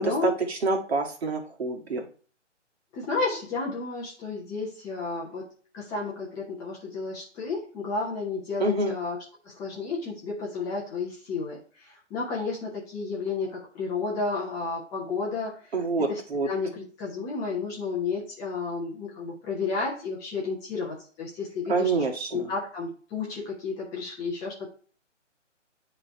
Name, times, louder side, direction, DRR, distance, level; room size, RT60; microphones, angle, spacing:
voice 1, 0.0-2.1 8.6-9.0 15.7-16.5 21.7-22.5, right 3 dB, 55° right, 2 dB, 1.9 m, -27 dB
voice 2, 2.9-5.5 5.7-9.2 9.4-15.7 16.1-16.2 16.4-21.9 22.3-24.7, left 4 dB, 10° left, -4 dB, 0.7 m, -32 dB
9.7 x 3.3 x 4.4 m, 0.42 s
figure-of-eight pair, 140°, 37 cm